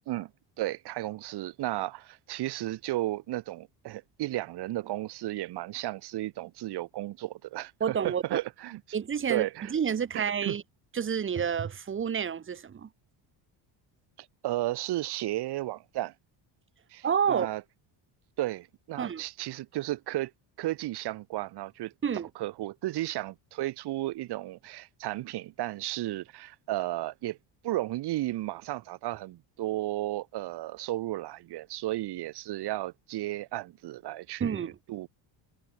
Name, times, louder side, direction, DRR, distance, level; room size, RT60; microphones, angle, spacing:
voice 1, 0.6-8.8 9.3-9.7 10.1-10.6 14.4-16.1 16.9-17.6 18.4-20.3 20.6-21.9 22.4-27.4 27.6-35.1, right 16 dB, 55° right, 5.4 m, -34 dB
voice 2, 7.8-8.2 8.9-10.6 10.9-12.9 17.0-17.5 19.0-19.2 22.0-22.3 34.4-34.7, right 7 dB, 25° right, 4.0 m, -29 dB
cardioid pair, 175°, 46 cm